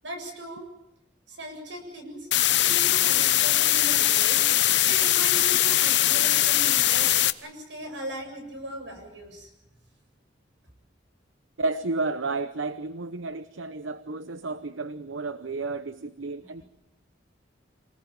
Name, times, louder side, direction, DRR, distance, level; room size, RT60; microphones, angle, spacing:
voice 1, 0.0-0.7 1.3-2.3 2.6-7.1 7.4-9.5 16.4-16.6, right 1 dB, 70° right, 7.6 m, -39 dB
sound 1, 2.3-7.3, left 13 dB, 65° left, 0.9 m, -21 dB
voice 2, 11.6-16.6, right 3 dB, 85° right, 0.9 m, -32 dB
28.0 x 19.5 x 7.3 m
head